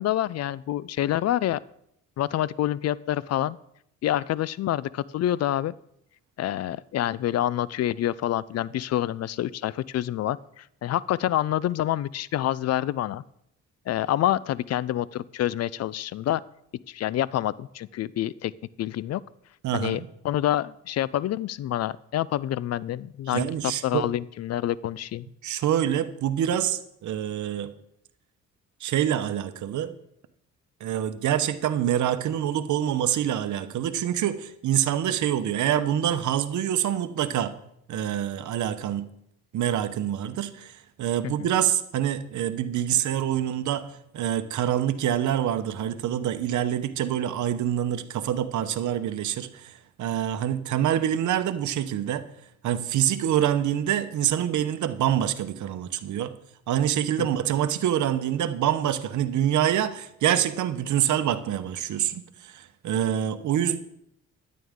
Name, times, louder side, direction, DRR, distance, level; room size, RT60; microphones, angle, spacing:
voice 1, 0.0-1.6 2.2-3.6 4.0-5.7 6.4-13.2 13.9-16.4 16.9-18.5 18.8-19.2 19.7-23.5 23.8-25.3 41.2-41.5 57.2-57.3, left 12 dB, 55° left, 20 dB, 0.4 m, -27 dB
voice 2, 19.6-20.1 23.3-24.0 25.4-27.7 28.8-29.9 30.8-37.5 37.9-39.1 39.5-43.9 44.1-52.2 52.6-56.3 56.7-63.8, right 10 dB, 70° right, 11 dB, 1.0 m, -26 dB
12.5 x 10.5 x 3.7 m, 0.75 s
cardioid pair, 90°, 30 cm